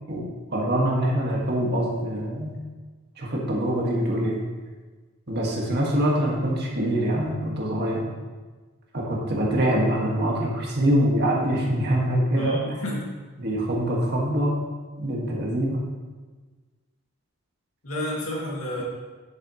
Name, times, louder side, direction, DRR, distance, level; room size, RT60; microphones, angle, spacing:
voice 1, 0.5-2.6 3.2-4.4 5.3-8.1 8.9-12.6 13.4-14.5 15.0-15.8, right 1 dB, 50° right, -3 dB, 1.9 m, -24 dB
voice 2, 12.4-13.2 17.8-18.8, left 1 dB, 80° left, -3 dB, 2.4 m, -30 dB
11.0 x 7.4 x 3.2 m, 1.3 s
head